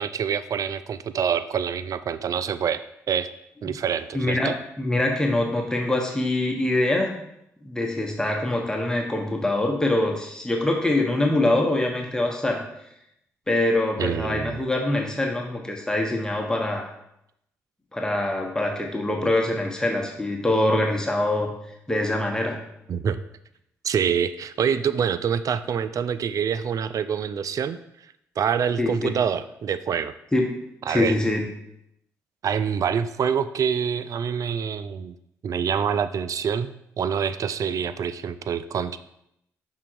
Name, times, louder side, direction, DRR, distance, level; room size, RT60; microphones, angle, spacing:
voice 1, 0.0-2.8 3.1-3.3 3.6-4.6 14.0-14.6 22.9-23.2 23.8-27.8 28.4-30.1 30.9-31.2 32.4-35.1 35.4-39.0, right 7 dB, 55° right, 13 dB, 0.3 m, -26 dB
voice 2, 4.1-4.5 4.8-7.1 7.6-12.6 13.5-16.9 17.9-21.5 21.9-22.6 28.8-29.2 30.3-30.5 30.9-31.4, left 1 dB, 10° left, 1 dB, 1.2 m, -24 dB
5.8 x 3.7 x 4.6 m, 0.78 s
hypercardioid pair, 45°, 7 cm